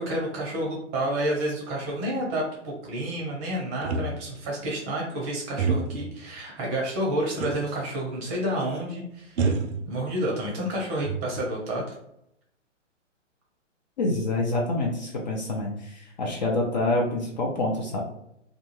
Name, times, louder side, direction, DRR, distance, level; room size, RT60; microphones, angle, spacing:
voice 1, 0.0-9.5 9.9-11.8, right 1 dB, 20° right, -2 dB, 0.6 m, -29 dB
sound 1, 3.8-4.5 5.6-6.2 7.4-7.8 8.1-8.2 9.4-10.4 10.8-11.6, right 4 dB, 65° right, 0.5 m, -28 dB
voice 2, 14.0-15.7 16.2-18.0, left 2 dB, 40° left, -1 dB, 0.4 m, -26 dB
2.3 x 2.3 x 2.9 m, 0.77 s
figure-of-eight pair, 130°, 37 cm